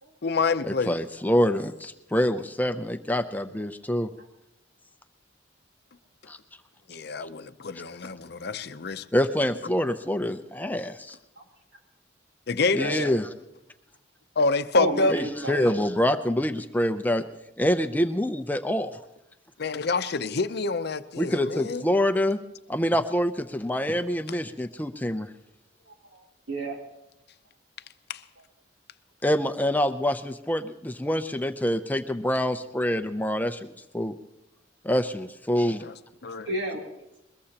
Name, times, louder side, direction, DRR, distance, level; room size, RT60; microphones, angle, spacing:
voice 1, 0.2-1.0 6.9-9.0 12.5-13.0 14.4-15.1 19.6-21.9 28.1-28.2 35.8-35.9 36.2-36.5, left 4 dB, 60° left, 11 dB, 0.7 m, -27 dB
voice 2, 0.9-4.1 6.3-6.4 9.1-11.2 12.7-13.2 15.1-17.2 17.6-19.0 21.2-22.4 22.7-25.3 29.2-34.1 34.8-35.9, equal, 10° left, 8 dB, 0.5 m, -26 dB
voice 3, 12.8-13.1 14.7-15.8 25.9-26.8 36.4-36.8, right 1 dB, 75° right, 0 dB, 3.3 m, -31 dB
22.0 x 21.0 x 2.9 m, 0.90 s
head